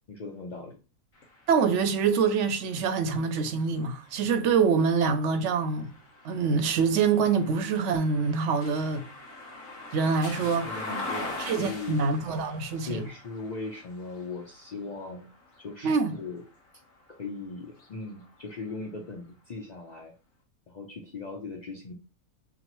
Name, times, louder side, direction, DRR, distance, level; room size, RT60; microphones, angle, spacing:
voice 1, 0.1-0.8 10.4-12.0 12.9-15.3 15.6-16.4 17.1-20.1 20.7-21.9, left 3 dB, 70° left, 0.4 m, -39 dB
sound 1, 1.1-17.1 17.6-18.9, left 2 dB, 40° left, 0.9 m, -43 dB
voice 2, 1.5-5.9 6.2-9.1 9.9-10.8 11.4-13.0 15.8-16.2, right 5 dB, 65° right, 0.7 m, -25 dB
6.0 x 2.0 x 2.9 m
omnidirectional pair, 1.6 m